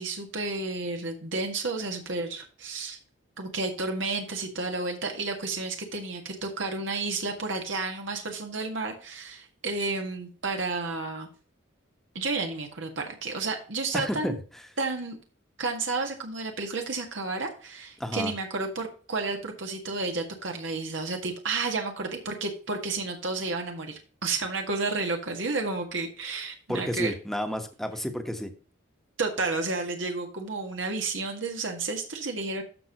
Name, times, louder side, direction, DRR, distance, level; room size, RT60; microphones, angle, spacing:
voice 1, 0.0-3.0 3.4-11.3 12.1-14.3 14.8-15.2 15.6-27.1 29.2-32.6, right 3 dB, 80° right, 3 dB, 1.7 m, -31 dB
voice 2, 13.9-14.4 18.0-18.3 26.7-28.5, equal, ahead, 6 dB, 1.1 m, -31 dB
14.0 x 5.4 x 3.0 m, 0.39 s
head